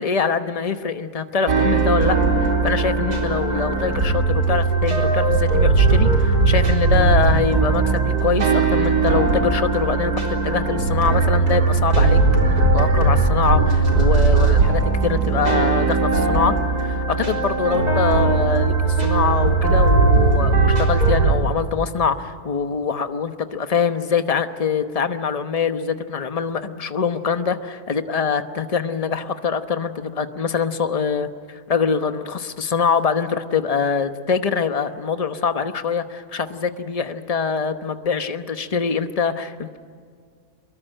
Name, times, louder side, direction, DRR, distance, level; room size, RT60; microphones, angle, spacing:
voice 1, 0.0-39.8, left 6 dB, 30° left, 9 dB, 0.9 m, -24 dB
sound 1, 1.5-21.3, right 3 dB, 85° right, 4.5 m, -18 dB
24.0 x 22.0 x 9.1 m, 2.1 s
omnidirectional pair, 1.6 m